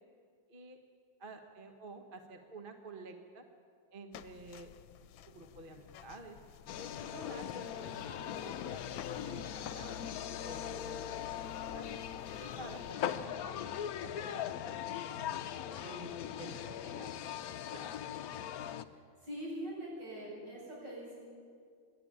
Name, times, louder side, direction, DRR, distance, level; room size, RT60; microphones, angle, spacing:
voice 1, 1.2-3.4 3.9-4.7 5.3-6.4 6.9-8.8 9.2-10.1 10.4-12.1 12.4-13.7 14.0-15.2 15.8-17.1 17.7-17.9, right 2 dB, 30° right, 4 dB, 1.3 m, -51 dB
sound 1, 4.1-12.9, left 9 dB, 85° left, 1.4 m, -52 dB
sound 2, 6.7-18.8, left 9 dB, 65° left, 1.0 m, -40 dB
voice 2, 19.2-21.2, equal, 65° right, -5 dB, 8.8 m, -42 dB
25.0 x 11.5 x 9.9 m, 2.2 s
omnidirectional pair, 2.0 m